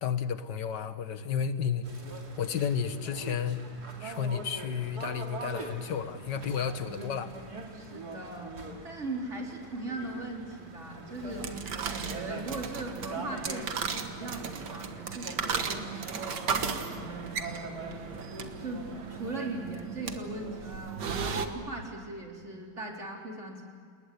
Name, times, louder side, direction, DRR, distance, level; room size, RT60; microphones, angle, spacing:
voice 1, 0.0-1.8 2.4-3.6 4.0-7.3, left 7 dB, 90° left, 10 dB, 1.9 m, -32 dB
sound 1, 1.8-19.3, right 2 dB, 65° right, 3.1 m, -43 dB
voice 2, 7.7-8.5 8.8-18.0 18.6-23.6, right 2 dB, 40° right, 0 dB, 4.3 m, -39 dB
sound 2, 11.1-21.5, right 6 dB, 80° right, 2.1 m, -36 dB
29.5 x 20.0 x 8.4 m, 2.2 s
omnidirectional pair, 1.8 m